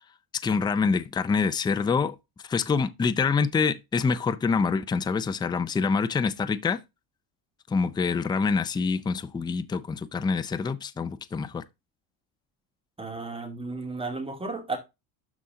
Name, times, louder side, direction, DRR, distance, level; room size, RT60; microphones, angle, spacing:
voice 1, 0.4-2.2 2.4-6.8 7.7-11.6, left 5 dB, 10° left, 0.4 m, -26 dB
voice 2, 13.0-14.8, right 3 dB, 10° right, 2.4 m, -33 dB
12.0 x 4.2 x 3.7 m
cardioid pair, 140°, 44 cm